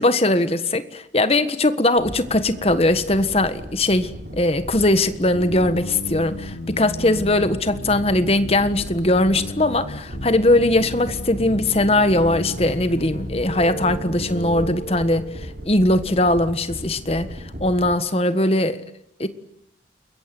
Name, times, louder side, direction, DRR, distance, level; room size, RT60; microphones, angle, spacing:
voice 1, 0.0-4.1 4.4-17.3 17.6-18.8 19.2-19.3, left 1 dB, 30° left, 11 dB, 1.5 m, -20 dB
sound 1, 2.0-17.9, equal, 50° right, 3.6 m, -37 dB
sound 2, 5.3-14.8, left 1 dB, 80° left, 2.0 m, -34 dB
sound 3, 11.8-16.0, right 2 dB, 60° left, 2.5 m, -38 dB
29.5 x 22.0 x 7.9 m, 0.75 s
head